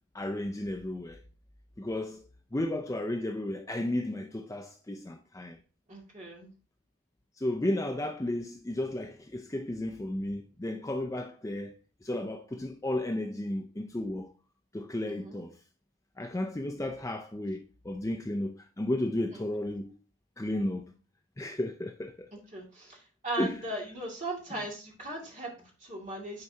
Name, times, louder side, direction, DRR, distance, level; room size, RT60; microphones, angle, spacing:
voice 1, 0.1-1.2 1.8-2.2 2.5-5.6 7.4-11.7 12.0-14.3 14.7-15.5 16.2-19.9 20.4-20.9 21.4-22.3 23.4-23.6, left 1 dB, 15° left, 0.4 m, -33 dB
voice 2, 5.9-6.5 15.1-15.4 19.3-19.4 22.5-26.4, right 1 dB, 35° right, 2.3 m, -38 dB
9.6 x 4.5 x 2.8 m
head